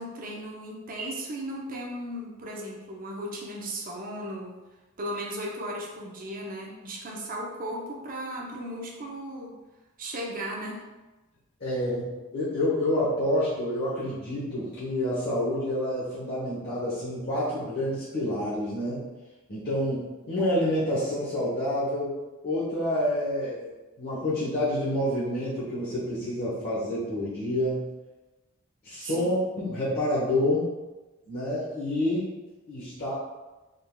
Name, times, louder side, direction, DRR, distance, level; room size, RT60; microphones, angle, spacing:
voice 1, 0.0-4.6 5.0-9.6 10.0-10.8 29.0-29.5, right 1 dB, 40° right, -2 dB, 0.7 m, -36 dB
voice 2, 11.6-19.0 19.5-22.1 22.4-23.7 24.0-27.8 28.8-30.7 31.3-32.3 32.7-33.1, left 1 dB, 50° left, -10 dB, 1.0 m, -28 dB
3.9 x 3.4 x 2.2 m, 1.1 s
head